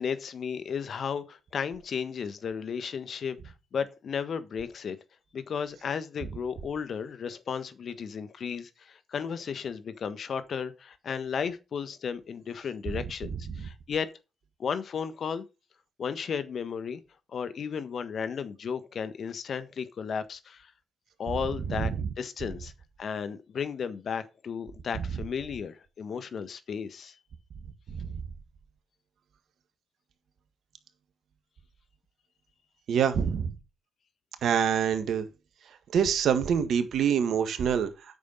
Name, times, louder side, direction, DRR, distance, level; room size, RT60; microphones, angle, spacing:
voice 1, 0.0-3.4 3.7-5.0 5.3-14.1 14.6-15.4 16.0-17.0 17.3-20.7 21.2-21.9 22.2-22.7 23.0-27.2, left 6 dB, 55° left, 1.4 m, -34 dB
voice 2, 32.9-33.5 34.4-35.2 35.9-37.9, right 7 dB, 65° right, 1.6 m, -25 dB
9.3 x 6.8 x 5.6 m
hypercardioid pair, 45°, 0 cm